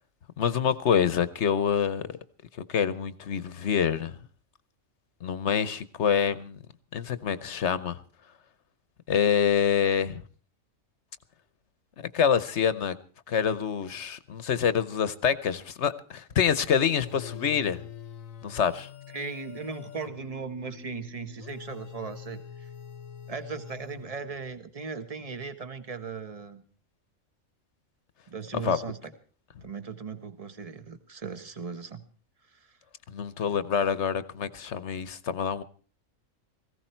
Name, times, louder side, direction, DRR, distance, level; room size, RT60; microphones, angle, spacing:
voice 1, 0.4-2.0 2.7-4.1 5.2-6.6 6.9-8.0 9.1-10.2 12.1-12.9 13.3-17.8 18.4-18.9 28.6-28.8 33.1-35.6, left 7 dB, 60° left, 1.2 m, -26 dB
sound 1, 17.0-24.5, left 8 dB, 85° left, 1.3 m, -44 dB
voice 2, 19.1-22.7 23.3-26.6 28.3-29.1 29.6-32.0 32.5-32.7, right 5 dB, 30° right, 1.4 m, -38 dB
18.5 x 16.0 x 4.5 m
omnidirectional pair, 1.4 m